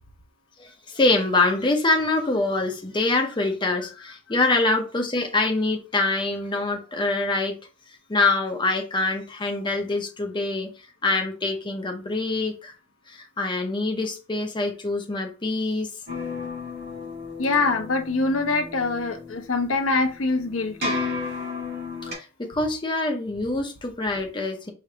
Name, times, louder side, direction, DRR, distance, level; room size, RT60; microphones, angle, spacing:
voice 1, 0.6-7.6 8.1-10.7 11.0-12.7 13.1-15.9 22.0-24.7, left 2 dB, 25° left, 0.6 m, -25 dB
sound 1, 16.1-22.1, left 3 dB, 50° right, 1.9 m, -33 dB
voice 2, 17.4-21.0, left 3 dB, 75° left, 0.9 m, -24 dB
4.9 x 2.7 x 3.3 m
head